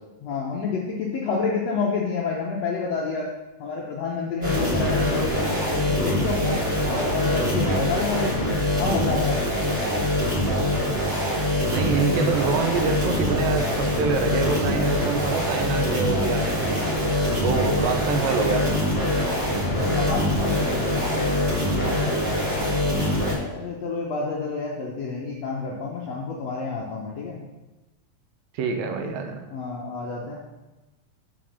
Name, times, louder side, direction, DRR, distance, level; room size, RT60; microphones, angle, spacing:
voice 1, 0.2-3.3 3.6-6.6 6.9-9.4 16.5-16.9 17.4-17.8 19.4-21.0 23.5-27.4 29.0-29.2 29.5-30.4, left 4 dB, 75° left, -3 dB, 1.5 m, -29 dB
sound 1, 4.4-23.3, left 1 dB, 35° right, 3.3 m, -24 dB
voice 2, 11.7-16.9 17.4-18.6 28.5-29.4, right 5 dB, 80° right, 5 dB, 2.5 m, -26 dB
6.1 x 6.0 x 6.3 m, 1.1 s
omnidirectional pair, 4.1 m